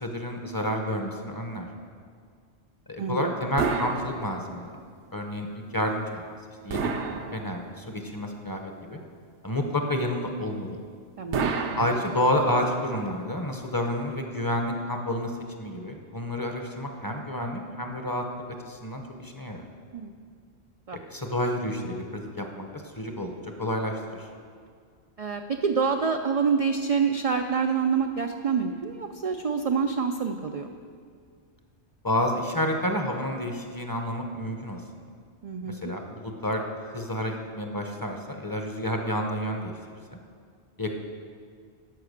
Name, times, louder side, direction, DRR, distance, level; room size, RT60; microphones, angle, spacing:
voice 1, 0.0-1.7 2.9-4.7 5.1-6.2 6.6-9.0 9.4-10.8 11.8-15.3 15.6-18.2 18.6-19.6 21.1-24.3 32.0-34.8 35.6-36.6 36.9-39.7 40.1-40.2 40.8-41.0, left 1 dB, 20° left, 3 dB, 0.7 m, -30 dB
voice 2, 3.0-3.3 11.2-11.5 19.9-20.1 20.9-21.0 25.2-30.7 35.4-35.9, right 6 dB, 60° right, 5 dB, 0.3 m, -27 dB
sound 1, 3.6-4.8 6.7-7.9 11.3-12.6, right 5 dB, 75° right, 1.1 m, -30 dB
12.0 x 5.7 x 6.6 m, 2.1 s
omnidirectional pair, 1.2 m